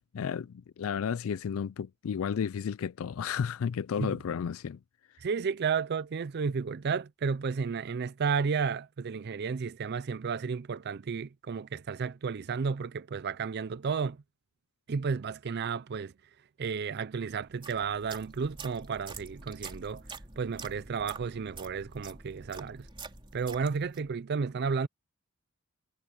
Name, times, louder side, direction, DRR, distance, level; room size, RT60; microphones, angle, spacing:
voice 1, 0.1-4.8, left 7 dB, 70° left, 0.4 m, -32 dB
voice 2, 5.2-14.2 14.9-16.1 16.6-20.0 20.4-22.9 23.3-24.9, right 5 dB, 50° right, 0.4 m, -32 dB
sound 1, 17.4-24.1, right 4 dB, 25° right, 3.3 m, -47 dB
head